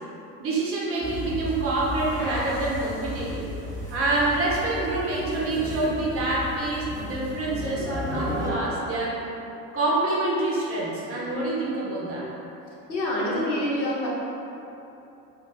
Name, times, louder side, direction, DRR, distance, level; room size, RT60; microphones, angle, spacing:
voice 1, 0.4-3.4 3.9-9.1 9.7-12.3, right 2 dB, 30° right, -5 dB, 0.7 m, -26 dB
sound 1, 1.0-8.5, left 1 dB, 25° left, 1.2 m, -34 dB
voice 2, 12.9-14.1, left 1 dB, 85° left, -5 dB, 0.7 m, -26 dB
2.5 x 2.4 x 3.8 m, 2.9 s
figure-of-eight pair, 70°, 49 cm